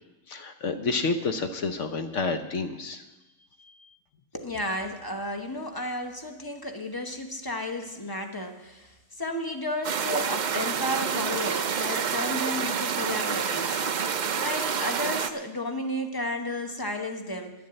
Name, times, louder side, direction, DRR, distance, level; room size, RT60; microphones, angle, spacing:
voice 1, 0.3-3.0, left 4 dB, 60° left, 7 dB, 1.0 m, -29 dB
voice 2, 4.3-17.5, left 1 dB, 15° left, 5 dB, 0.9 m, -33 dB
sound 1, 9.8-15.3, right 6 dB, 80° right, 0.4 m, -28 dB
11.5 x 7.2 x 8.8 m, 1.0 s
omnidirectional pair, 1.6 m